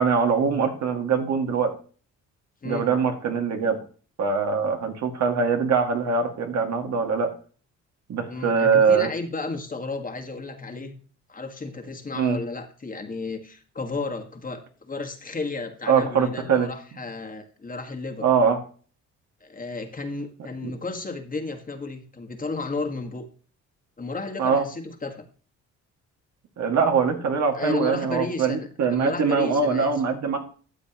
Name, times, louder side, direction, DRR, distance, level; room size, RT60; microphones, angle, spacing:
voice 1, 0.0-1.7 2.6-3.8 4.2-7.3 8.1-9.1 12.2-12.4 15.9-16.7 18.2-18.6 20.6-20.7 24.4-24.6 26.6-30.4, right 5 dB, 65° right, 4 dB, 2.1 m, -22 dB
voice 2, 8.3-11.0 11.3-18.3 19.4-23.2 24.0-25.2 27.5-29.9, left 3 dB, 30° left, 5 dB, 1.6 m, -33 dB
13.0 x 7.4 x 3.0 m, 0.40 s
cardioid pair, 90°, 30 cm